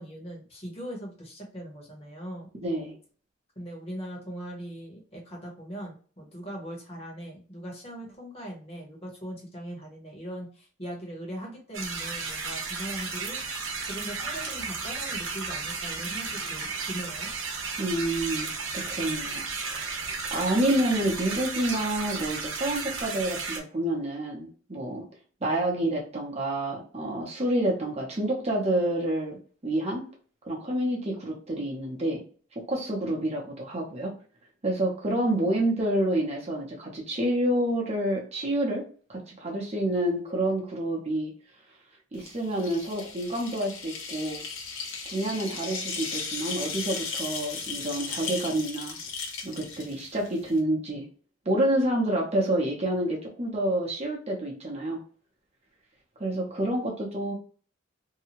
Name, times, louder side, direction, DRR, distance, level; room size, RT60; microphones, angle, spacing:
voice 1, 0.0-2.5 3.6-13.4 13.8-17.3, right 1 dB, 30° left, -1 dB, 1.0 m, -40 dB
voice 2, 2.6-3.0 17.8-18.5 18.7-25.0 25.4-29.4 29.6-30.0 30.4-32.2 32.7-34.1 34.6-41.3 42.1-44.4 45.0-49.0 49.4-51.0 51.5-55.0 56.2-57.3, right 1 dB, 30° right, -2 dB, 0.7 m, -28 dB
sound 1, 11.7-23.6, right 4 dB, 70° right, 0.8 m, -34 dB
sound 2, 42.2-50.6, left 4 dB, 75° left, 0.8 m, -36 dB
2.7 x 2.3 x 2.9 m, 0.41 s
head